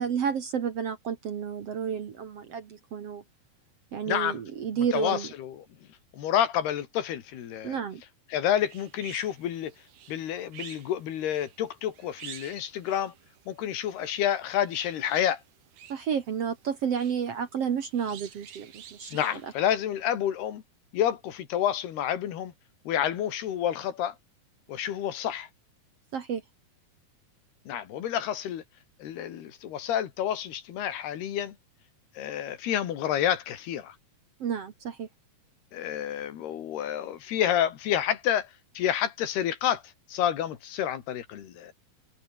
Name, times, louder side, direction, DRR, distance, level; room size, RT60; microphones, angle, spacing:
voice 1, 0.0-3.2 3.9-5.3 7.6-8.0 15.9-19.1 26.1-26.4 34.4-35.1, right 7 dB, 55° right, 2.0 m, -31 dB
voice 2, 4.1-4.4 4.9-5.7 6.1-7.8 8.3-9.7 10.1-13.1 13.5-15.4 19.1-20.6 20.9-22.5 22.9-24.2 24.7-25.5 27.7-28.6 29.0-31.6 32.2-34.0 35.7-38.5 38.8-39.8 40.1-41.7, left 10 dB, 85° left, 4.2 m, -29 dB
sound 1, 8.6-19.6, right 10 dB, 85° right, 4.4 m, -50 dB
omnidirectional pair, 4.5 m